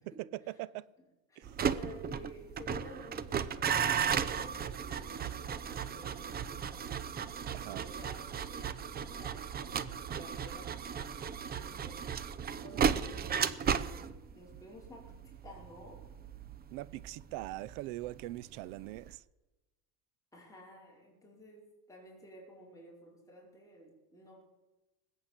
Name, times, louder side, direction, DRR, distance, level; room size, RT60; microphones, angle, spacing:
voice 1, 0.5-0.9 1.4-1.5 7.5-7.8 16.7-19.2, right 17 dB, 80° right, 0.7 m, -42 dB
voice 2, 1.3-6.9 7.6-10.9 11.2-12.1 12.6-16.0 20.3-24.4, left 1 dB, 10° left, 4.9 m, -53 dB
sound 1, 1.4-18.4 18.7-19.1, right 7 dB, 25° right, 0.7 m, -35 dB
20.0 x 8.3 x 8.2 m
cardioid pair, 130°, 37 cm